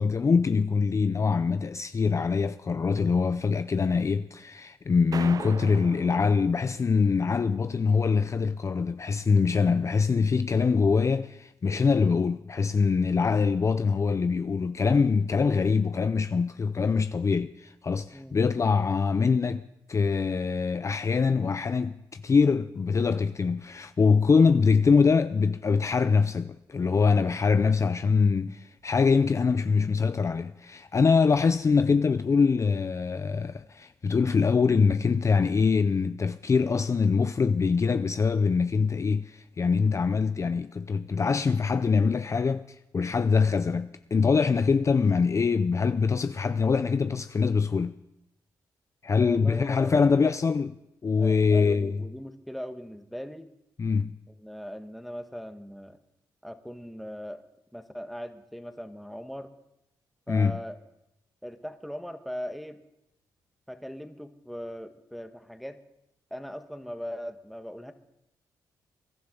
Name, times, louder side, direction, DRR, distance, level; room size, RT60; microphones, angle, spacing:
voice 1, 0.0-48.0 49.0-50.8 51.0-52.0 53.8-54.2 60.3-60.5, left 5 dB, 35° left, 0.5 m, -24 dB
sound 1, 5.1-7.5, right 7 dB, 50° right, 0.4 m, -40 dB
voice 2, 49.2-50.1 51.1-53.5 54.3-56.0 56.4-57.4 57.7-59.5 60.3-60.8 61.4-62.8 63.7-65.8 66.3-67.9, equal, ahead, 1.4 m, -39 dB
23.0 x 11.5 x 3.9 m
supercardioid pair, 55°, 8 cm